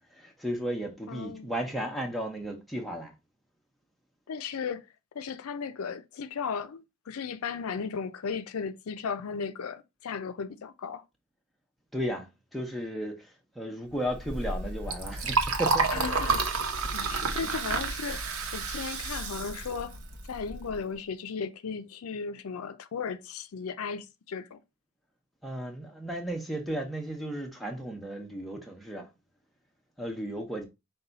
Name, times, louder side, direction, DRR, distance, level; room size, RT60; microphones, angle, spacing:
voice 1, 0.1-3.1 11.9-16.0 17.4-17.5 25.4-29.1 30.0-30.7, right 1 dB, ahead, 0.8 m, -34 dB
voice 2, 1.1-1.5 4.3-4.9 5.1-11.0 15.9-16.4 16.9-18.2 18.5-20.0 20.3-24.6, left 5 dB, 85° left, 0.4 m, -36 dB
Liquid, 14.1-20.8, right 4 dB, 80° right, 0.9 m, -30 dB
5.4 x 2.3 x 3.9 m
head